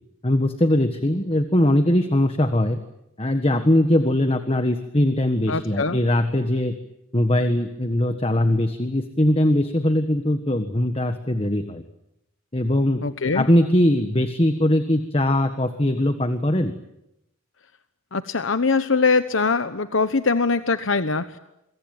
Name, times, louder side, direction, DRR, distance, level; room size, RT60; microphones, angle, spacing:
voice 1, 0.2-2.8 3.2-6.7 7.1-11.8 12.5-13.0 13.3-16.7, left 1 dB, 30° left, 8 dB, 1.5 m, -21 dB
voice 2, 5.5-6.0 13.0-13.5 18.1-21.4, left 4 dB, 75° left, 11 dB, 1.0 m, -22 dB
26.5 x 23.0 x 9.1 m, 0.86 s
head